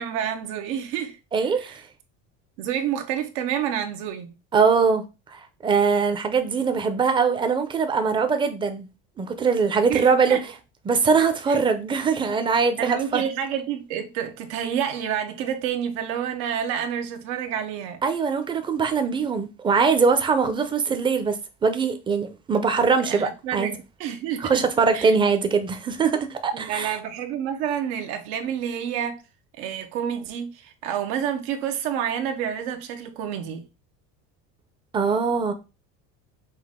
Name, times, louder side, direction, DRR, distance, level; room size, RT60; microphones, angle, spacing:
voice 1, 0.0-1.2 1.5-1.8 2.6-4.3 9.9-10.4 11.5-11.6 12.8-18.0 23.0-24.7 24.9-25.1 26.5-29.2 29.6-33.6, right 9 dB, 85° right, 1.0 m, -29 dB
voice 2, 1.3-1.8 4.5-5.0 5.3-8.9 9.2-10.4 10.9-13.2 18.0-23.7 24.4-26.9 34.9-35.5, right 5 dB, 15° right, 0.5 m, -22 dB
5.9 x 2.5 x 3.6 m
cardioid pair, 155°, 32 cm